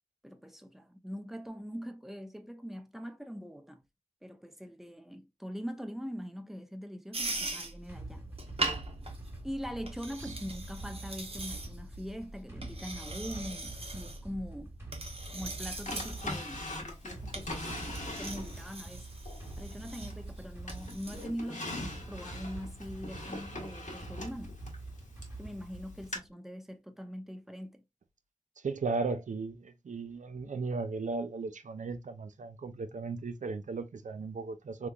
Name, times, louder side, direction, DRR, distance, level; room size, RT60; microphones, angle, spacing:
voice 1, 0.2-3.8 4.2-8.2 9.4-14.8 15.3-19.1 19.6-24.6 25.4-27.8, equal, ahead, 0.6 m, -42 dB
sound 1, 7.1-21.2, right 2 dB, 50° right, 0.8 m, -41 dB
sound 2, 7.9-26.3, right 2 dB, 20° right, 1.3 m, -46 dB
Drawer open or close, 15.9-18.8 19.3-20.3 20.7-25.4 26.1-26.2, left 1 dB, 75° left, 1.2 m, -41 dB
voice 2, 28.6-34.9, right 4 dB, 70° right, 0.4 m, -36 dB
3.5 x 2.9 x 2.3 m
wide cardioid pair, 65°, 13 cm